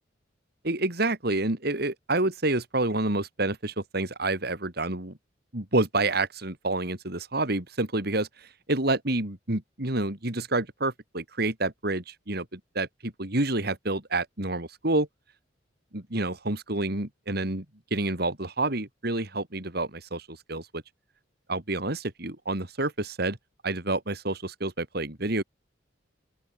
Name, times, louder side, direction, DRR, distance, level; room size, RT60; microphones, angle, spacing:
voice 1, 0.6-5.2 5.5-15.1 15.9-17.6 17.9-20.8 21.5-23.4 23.6-25.4, right 2 dB, 55° right, 3.3 m, -28 dB
open air
head